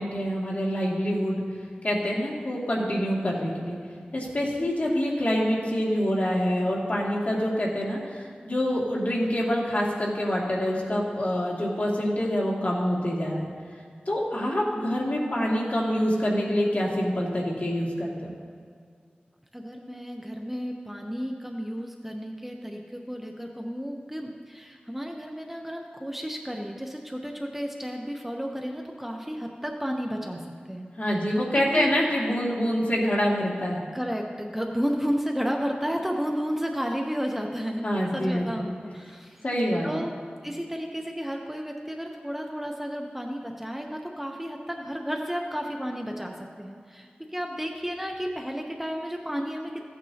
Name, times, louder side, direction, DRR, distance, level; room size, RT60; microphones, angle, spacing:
voice 1, 0.0-1.4 1.8-3.8 4.1-13.5 14.1-18.3 31.0-33.8 37.8-38.5 39.4-39.9, equal, 50° left, -4 dB, 2.3 m, -26 dB
voice 2, 19.5-30.9 31.3-31.9 33.9-37.8 38.1-39.4 39.8-40.1 40.4-49.9, equal, 5° right, 1 dB, 0.8 m, -32 dB
15.5 x 9.3 x 2.8 m, 2.1 s
wide cardioid pair, 65°, 3 cm